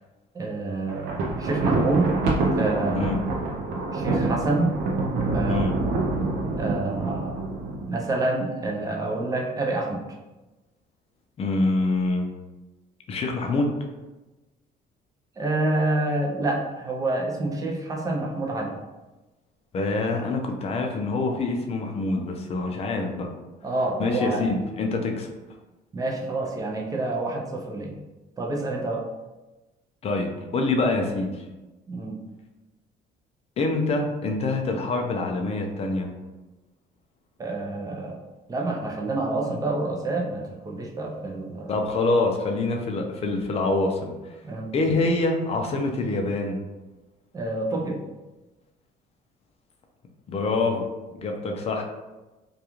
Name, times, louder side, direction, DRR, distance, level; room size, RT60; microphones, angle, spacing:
voice 1, 0.3-2.1 2.6-3.1 3.9-4.7 5.3-5.7 6.6-7.4 7.9-10.0 15.4-18.8 23.6-24.5 25.9-27.9 28.4-29.1 31.9-32.2 37.4-38.2 38.5-41.7 44.4-44.7 47.3-48.0, right 2 dB, 20° right, 0 dB, 0.4 m, -27 dB
Thunder, 0.9-8.1, right 3 dB, 80° right, 0.5 m, -26 dB
voice 2, 11.4-12.3 13.1-13.8 19.7-23.3 24.0-25.3 30.0-31.4 33.6-36.1 41.7-44.1 44.7-46.6 50.3-50.9 51.2-51.8, left 2 dB, 35° left, 2 dB, 0.4 m, -25 dB
2.3 x 2.3 x 2.9 m, 1.1 s
cardioid pair, 110°, 17 cm